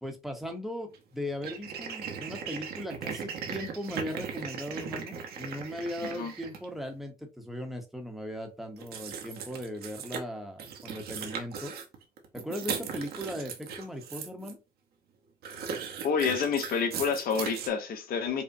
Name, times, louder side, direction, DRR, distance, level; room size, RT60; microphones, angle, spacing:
voice 1, 0.0-11.7 12.3-14.6, equal, ahead, 0.8 m, -38 dB
sound 1, 0.9-1.0 1.4-6.6 8.8-10.2 10.6-14.5 15.4-17.7, right 6 dB, 65° right, 0.9 m, -38 dB
voice 2, 16.0-18.4, left 6 dB, 60° left, 0.9 m, -28 dB
5.2 x 2.1 x 2.6 m
cardioid pair, 110°, 17 cm